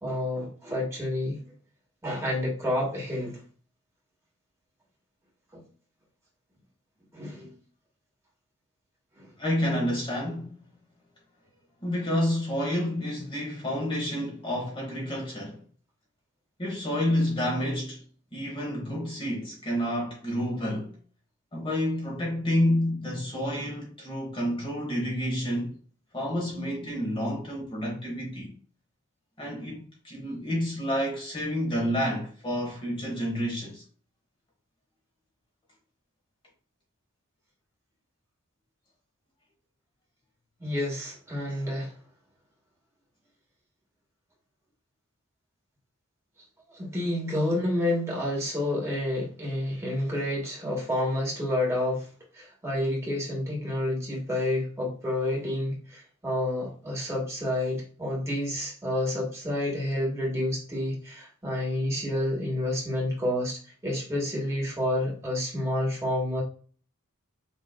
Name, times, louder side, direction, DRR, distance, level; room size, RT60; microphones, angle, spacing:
voice 1, 0.0-1.4 2.0-3.4 5.5-5.6 7.1-7.5 9.2-9.3 40.6-41.9 46.7-52.1 52.3-66.4, left 1 dB, 15° right, 1.7 m, -29 dB
voice 2, 9.4-10.5 11.8-15.6 16.6-18.0 18.3-20.9 21.5-25.7 26.1-28.5 29.4-33.8, equal, 25° left, 1.3 m, -29 dB
6.4 x 3.0 x 2.3 m
head